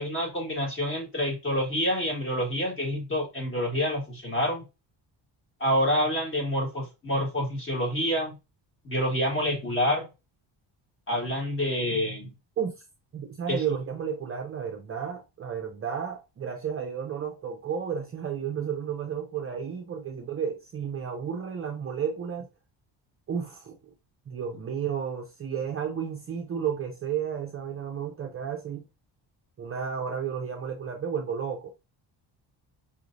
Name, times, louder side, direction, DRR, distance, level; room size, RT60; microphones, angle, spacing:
voice 1, 0.0-4.6 5.6-8.3 8.8-10.1 11.1-12.3 13.5-13.6, equal, 25° left, 1.6 m, -27 dB
voice 2, 13.1-22.5 23.3-23.8 24.3-28.8 29.6-31.7, right 7 dB, 30° right, 0.5 m, -32 dB
5.5 x 3.1 x 2.6 m
cardioid pair, 175°, 45 cm